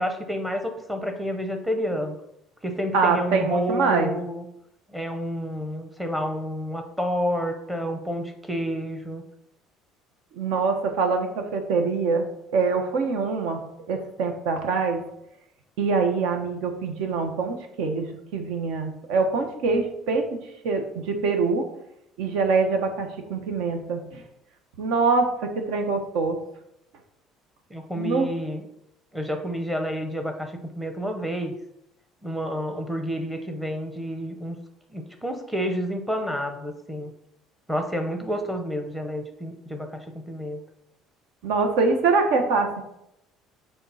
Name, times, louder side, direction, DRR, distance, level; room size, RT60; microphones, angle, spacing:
voice 1, 0.0-2.1 2.6-4.4 4.9-9.2 27.7-28.6 29.1-31.6 32.2-34.6 34.9-37.1 37.7-40.6, equal, 5° right, 5 dB, 0.7 m, -29 dB
voice 2, 2.9-4.1 10.4-12.3 12.5-13.6 13.9-15.0 15.8-18.1 18.3-20.4 20.6-21.6 22.2-24.2 24.8-26.4 28.0-28.3 41.4-42.8, right 4 dB, 75° right, 5 dB, 1.2 m, -24 dB
6.9 x 3.7 x 5.6 m, 0.81 s
cardioid pair, 170°, 0 cm